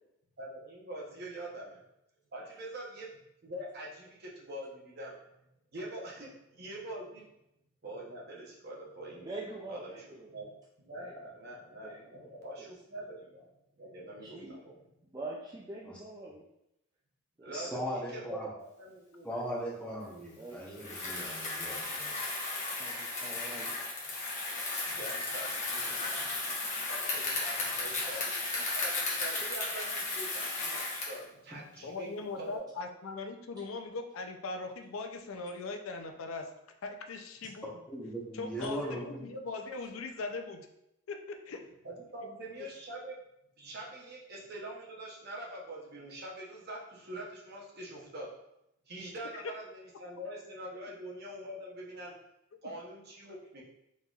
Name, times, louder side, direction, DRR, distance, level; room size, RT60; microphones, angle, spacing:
voice 1, 0.4-1.8 2.3-3.1 3.4-5.1 5.7-7.3 7.8-9.3 9.7-10.5 10.8-13.5 13.8-14.8 17.4-19.4 24.8-26.3 26.9-32.6 38.8-38.9 41.8-43.2 43.6-48.3 48.9-52.1 52.6-53.6, right 1 dB, 45° right, -3 dB, 0.9 m, -44 dB
voice 2, 9.2-10.3 11.0-11.1 11.8-12.0 12.6-12.7 14.2-14.6 15.1-16.5 17.4-17.8 20.4-21.1 22.7-23.9 28.0-28.4, right 2 dB, 20° right, -4 dB, 0.3 m, -45 dB
voice 3, 17.5-18.5 19.2-22.1 31.5-31.6 37.9-39.3, equal, 5° left, -4 dB, 0.7 m, -38 dB
Bicycle, 20.7-31.2, left 2 dB, 35° left, 0.9 m, -35 dB
voice 4, 31.8-36.5 36.8-37.7 38.3-40.7 41.1-41.6 42.2-42.7 49.4-49.5 52.5-52.6, left 3 dB, 75° left, 6 dB, 0.4 m, -40 dB
4.1 x 3.8 x 2.4 m, 0.83 s
head